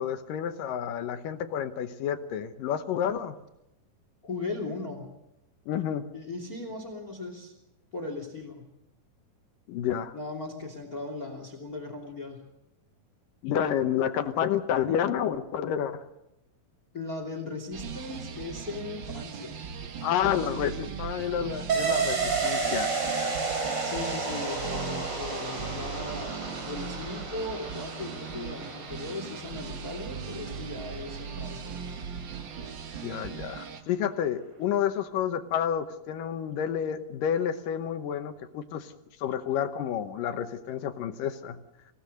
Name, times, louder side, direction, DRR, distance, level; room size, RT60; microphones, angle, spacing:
voice 1, 0.0-3.4 5.7-6.1 9.7-10.1 13.4-16.0 20.0-20.7 21.0-23.3 33.0-38.9 39.2-41.6, left 9 dB, 75° left, 9 dB, 2.5 m, -30 dB
voice 2, 4.2-5.1 6.1-7.5 7.9-8.7 10.1-12.4 16.9-19.6 20.2-20.9 23.8-26.4 26.7-31.7, left 3 dB, 25° left, 5 dB, 3.0 m, -38 dB
heavy metal loop, 17.7-33.8, right 7 dB, 80° right, 1.0 m, -39 dB
sound 1, 21.7-31.1 31.4-31.5, right 4 dB, 30° right, 4.4 m, -32 dB
26.0 x 17.5 x 6.5 m, 0.88 s
omnidirectional pair, 4.2 m